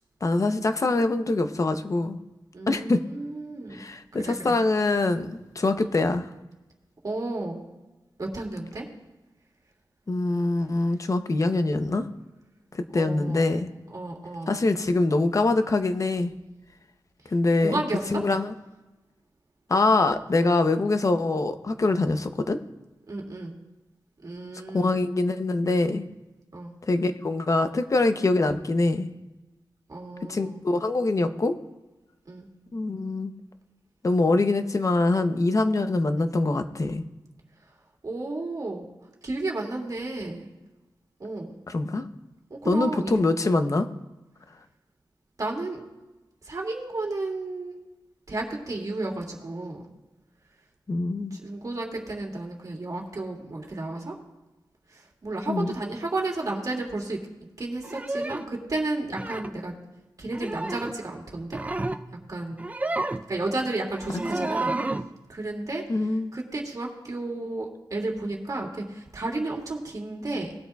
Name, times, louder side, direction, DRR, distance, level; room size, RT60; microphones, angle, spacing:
voice 1, 0.2-2.2 2.7-3.0 3.7-6.3 10.1-12.1 12.7-13.7 14.5-16.3 17.3-17.8 18.1-18.5 19.7-22.6 24.7-26.0 26.9-29.1 30.3-31.6 32.7-33.3 34.0-37.0 41.7-42.1 42.6-43.9 50.9-51.4 55.5-55.7 65.9-66.3, left 2 dB, 40° left, 9 dB, 0.7 m, -24 dB
voice 2, 2.5-3.8 4.1-4.6 5.8-6.0 7.0-7.6 8.2-8.9 12.9-13.6 13.9-14.6 17.6-18.2 23.1-23.6 24.2-24.9 26.5-26.7 29.9-30.6 32.3-32.5 38.0-38.9 39.2-40.5 41.2-41.6 42.5-43.2 45.4-45.8 46.4-47.8 48.3-49.8 51.3-54.2 54.9-57.2 57.6-59.7 60.2-61.6 62.3-62.7 63.3-64.8 65.3-65.8 66.3-70.6, right 2 dB, 50° right, -1 dB, 2.3 m, -32 dB
sound 1, 57.8-58.5 59.2-59.5 60.3-61.0 61.4-62.0 62.5-63.3 64.0-65.1, right 2 dB, 20° right, 0.4 m, -30 dB
19.5 x 8.5 x 2.3 m, 1.1 s
wide cardioid pair, 105°, 8 cm